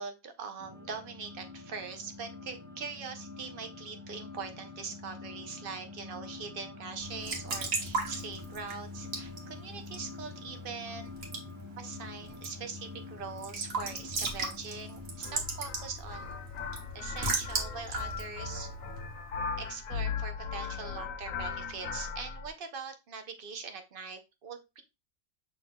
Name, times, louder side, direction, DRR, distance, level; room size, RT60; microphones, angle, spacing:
voice 1, 0.0-11.1 11.8-16.4 16.9-18.7 19.6-24.8, right 5 dB, 50° right, 7 dB, 0.8 m, -42 dB
sound 1, 0.6-15.3, left 3 dB, 15° right, 1.0 m, -47 dB
Raindrop / Drip / Trickle dribble, 7.0-19.5, right 3 dB, 85° right, 1.5 m, -38 dB
sound 2, 15.2-22.5, left 5 dB, 85° left, 1.2 m, -38 dB
6.0 x 3.5 x 2.2 m, 0.25 s
omnidirectional pair, 1.4 m